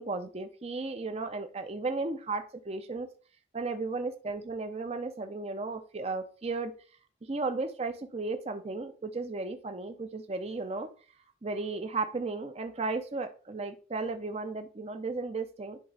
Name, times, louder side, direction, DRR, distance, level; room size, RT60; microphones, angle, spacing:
voice 1, 0.0-3.1 3.5-6.7 7.2-10.9 11.4-15.8, right 3 dB, 30° right, 7 dB, 0.5 m, -34 dB
10.5 x 3.9 x 3.3 m, 0.38 s
head